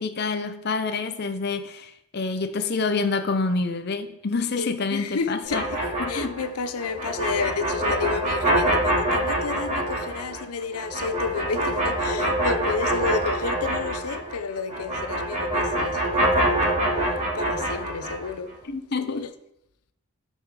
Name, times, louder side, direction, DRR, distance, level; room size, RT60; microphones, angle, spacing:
voice 1, 0.0-5.7 6.0-6.3 18.6-19.3, left 4 dB, 45° left, 0.6 m, -27 dB
voice 2, 4.6-5.8 6.1-18.6 19.0-19.3, left 4 dB, 80° left, 0.7 m, -31 dB
sound 1, 5.4-14.4 14.7-18.3, right 1 dB, 35° right, 2.8 m, -25 dB
13.0 x 5.5 x 4.8 m
head